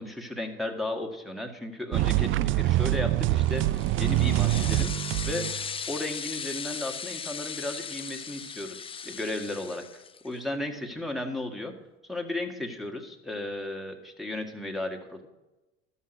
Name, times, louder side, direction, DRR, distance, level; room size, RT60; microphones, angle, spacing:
voice 1, 0.0-5.5 5.9-11.7 12.1-15.3, left 2 dB, ahead, 4 dB, 1.8 m, -35 dB
sound 1, 1.9-5.7, right 15 dB, 45° right, 0.4 m, -25 dB
sound 2, 3.4-10.3, left 6 dB, 20° left, 0.5 m, -38 dB
12.5 x 5.7 x 8.1 m, 1.1 s
hypercardioid pair, 75°, 30 cm